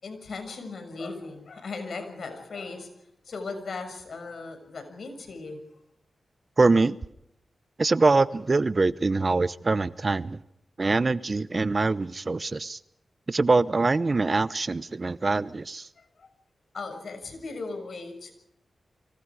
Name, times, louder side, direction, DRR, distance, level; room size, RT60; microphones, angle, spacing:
voice 1, 0.0-5.6 16.0-16.3 16.7-18.3, left 3 dB, 70° left, 6.6 m, -38 dB
voice 2, 6.6-7.0 7.8-10.4 10.8-12.8 13.3-15.9, right 3 dB, 40° right, 0.9 m, -24 dB
30.0 x 25.0 x 4.9 m
cardioid pair, 70°, 0 cm